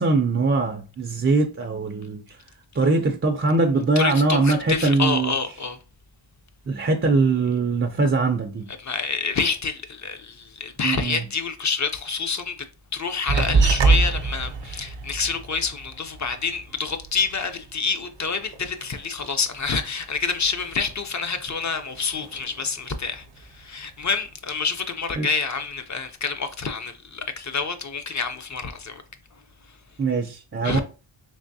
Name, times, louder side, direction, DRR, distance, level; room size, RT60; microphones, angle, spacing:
voice 1, 0.0-2.2 2.8-5.3 6.7-8.7 10.8-11.2 25.2-25.3 30.0-30.8, right 3 dB, 30° right, 0.3 m, -22 dB
voice 2, 4.0-5.8 8.8-12.6 12.9-29.0 30.6-30.8, left 5 dB, 35° left, 0.5 m, -27 dB
sound 1, 13.3-18.2 18.5-19.9 20.2-21.1 21.4-22.7 23.1-23.8, right 4 dB, 60° right, 0.6 m, -25 dB
3.4 x 3.2 x 2.6 m
wide cardioid pair, 95°, 50 cm